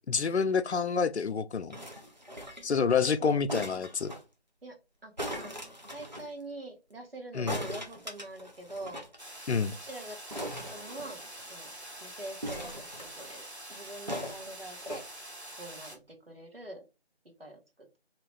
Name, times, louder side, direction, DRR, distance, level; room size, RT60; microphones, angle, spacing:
voice 1, 0.1-1.8 2.6-4.1 7.3-7.6 9.5-9.7, left 5 dB, 85° left, 0.5 m, -28 dB
sound 1, 1.7-2.8 3.5-4.2 5.2-6.3 7.5-9.2 9.4-9.5 9.7-9.9 10.3-11.5 12.4-13.4 14.1-15.0 15.8-15.9, equal, 40° right, 0.8 m, -39 dB
voice 2, 3.0-3.4 4.6-4.8 5.0-5.6 5.9-9.0 9.8-11.7 12.0-15.0 15.6-16.8 17.4-18.0, right 1 dB, 60° right, 1.2 m, -45 dB
sound 2, 9.2-16.0, right 1 dB, 80° right, 1.5 m, -46 dB
2.8 x 2.5 x 3.3 m
figure-of-eight pair, 180°, 32 cm